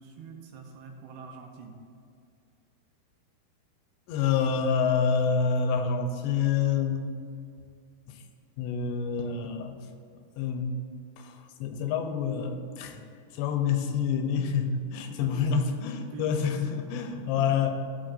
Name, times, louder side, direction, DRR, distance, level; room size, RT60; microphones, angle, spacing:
voice 1, 0.0-1.8 15.1-16.8 17.2-17.5, right 4 dB, 80° right, 3 dB, 2.7 m, -43 dB
voice 2, 4.1-7.1 8.1-8.2 8.6-9.8 10.4-10.8 11.2-13.0 13.3-17.7, left 6 dB, 90° left, 5 dB, 2.8 m, -27 dB
15.5 x 6.2 x 2.5 m, 2.3 s
omnidirectional pair, 4.9 m